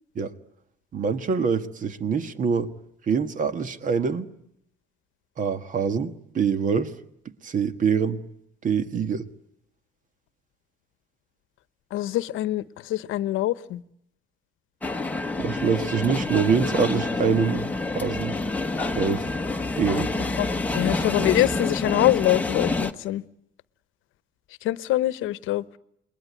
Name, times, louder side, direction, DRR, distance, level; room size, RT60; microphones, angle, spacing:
voice 1, 0.9-2.7 3.1-4.3 5.4-6.9 7.4-8.2 8.6-9.2 15.4-17.7 17.9-18.4 18.9-19.3 19.8-20.1, right 6 dB, 40° right, 1.5 m, -24 dB
voice 2, 11.9-13.8 20.4-20.5 20.7-23.2 24.6-25.6, left 15 dB, 85° left, 1.0 m, -24 dB
sound 1, 14.8-22.9, left 2 dB, 5° left, 1.1 m, -27 dB
28.5 x 22.0 x 9.4 m
cardioid pair, 155°, 20 cm